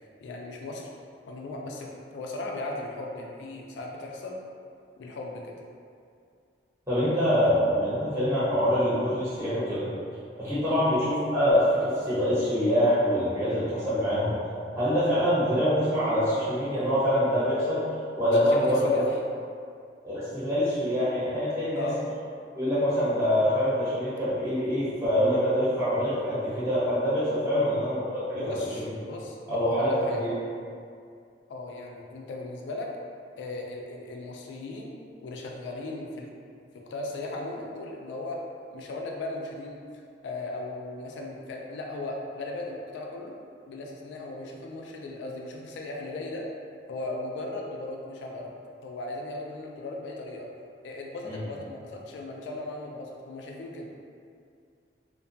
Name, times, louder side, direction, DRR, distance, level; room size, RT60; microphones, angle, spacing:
voice 1, 0.2-0.9 1.3-4.4 5.0-5.5 10.7-10.8 18.3-19.2 21.8-22.0 27.5-27.7 28.3-30.2 31.5-32.9 33.4-36.3 36.9-38.4 38.7-39.8 40.2-43.4 43.7-46.5 46.9-48.5 48.8-50.5 50.8-53.9, left 2 dB, 75° left, 0 dB, 0.3 m, -37 dB
voice 2, 6.9-9.9 10.4-14.3 14.8-17.8 18.1-19.0 20.0-21.9 22.5-28.9 29.5-30.4 51.3-51.4, equal, 15° right, -12 dB, 0.9 m, -25 dB
2.5 x 2.2 x 2.6 m, 2.3 s
head